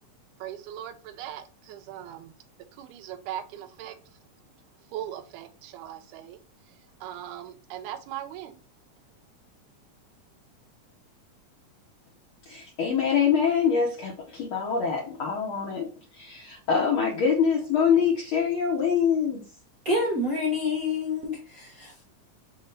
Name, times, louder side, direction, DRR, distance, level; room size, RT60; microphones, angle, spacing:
voice 1, 0.4-2.3 2.8-4.0 4.9-6.4 7.0-8.6, right 11 dB, 80° right, 2.0 m, -39 dB
voice 2, 12.5-19.4, left 6 dB, 90° left, 1.1 m, -25 dB
voice 3, 19.8-22.0, left 2 dB, 60° right, 0.9 m, -28 dB
5.9 x 2.2 x 3.9 m
omnidirectional pair, 3.6 m